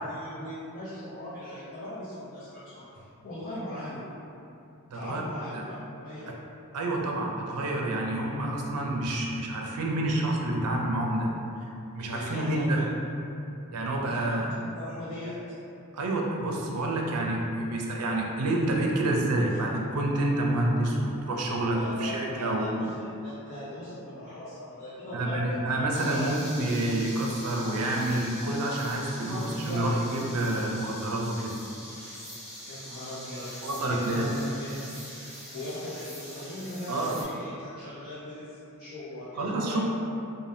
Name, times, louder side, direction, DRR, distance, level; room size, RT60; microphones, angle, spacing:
voice 1, 0.0-4.0 4.9-5.7 6.0-6.3 11.9-12.8 14.1-14.3 14.6-15.4 19.5-19.6 21.6-22.9 23.2-25.8 26.1-26.3 29.2-29.8 32.6-33.5 33.8-34.7 34.9-39.8, left 1 dB, 45° left, -12 dB, 0.6 m, -39 dB
voice 2, 4.9-5.2 5.5-5.6 6.7-11.3 11.9-12.8 13.7-14.5 15.9-22.7 25.1-31.5 33.6-34.3 36.9-37.2 39.4-39.8, right 1 dB, 80° right, -1 dB, 0.4 m, -28 dB
sound 1, 25.9-37.2, equal, ahead, 1.2 m, -43 dB
3.2 x 2.1 x 2.6 m, 2.7 s
head